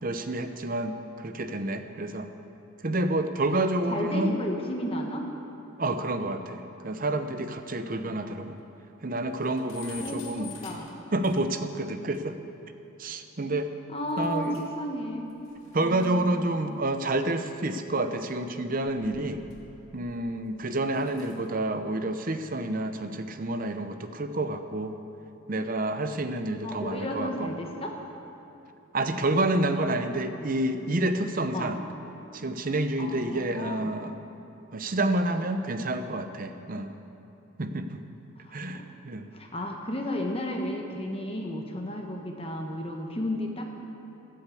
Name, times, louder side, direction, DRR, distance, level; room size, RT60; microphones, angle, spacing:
voice 1, 0.0-2.3 2.8-4.4 5.8-8.6 9.0-10.5 11.1-12.4 13.0-13.7 14.2-14.6 15.7-19.4 19.9-25.0 25.5-27.5 28.9-31.8 32.3-34.3 34.7-37.0 37.6-38.0 38.5-39.3, right 2 dB, 40° right, 8 dB, 0.7 m, -29 dB
voice 2, 3.9-5.3 7.9-8.3 10.0-11.0 13.9-15.3 15.8-16.7 26.6-28.0 31.5-31.8 33.0-33.9 38.4-38.8 39.3-43.6, left 1 dB, 25° left, 2 dB, 1.2 m, -33 dB
sound 1, 7.3-7.4 7.8-7.9 8.2-8.3 8.6-8.7 9.1-11.7 12.1-12.2 14.1-14.9 15.1-17.8 18.6-20.2 20.7-21.5, left 5 dB, 70° left, 2.1 m, -50 dB
12.5 x 10.5 x 8.4 m, 2.9 s
head